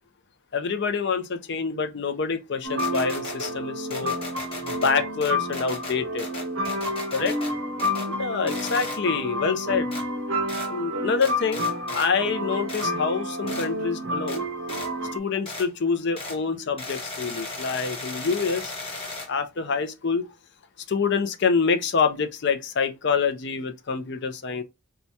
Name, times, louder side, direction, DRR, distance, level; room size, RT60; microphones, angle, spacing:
voice 1, 0.5-4.1 4.6-6.3 7.1-7.4 8.0-9.9 10.7-14.4 15.1-18.7 19.3-20.3 20.9-24.6, left 5 dB, 50° left, 0.5 m, -26 dB
sound 1, 2.6-15.2, equal, 70° right, 0.7 m, -30 dB
sound 2, 2.8-3.5 3.9-4.9 5.2-7.5 7.8-8.1 8.5-9.0 9.9-10.0 10.5-10.7 11.2-12.1 12.7-12.9 13.5-13.7 14.3-14.4 14.7-14.9 15.5-15.7 16.2-16.4 16.8-19.3, left 3 dB, 25° left, 1.0 m, -36 dB
4.5 x 2.3 x 2.7 m
head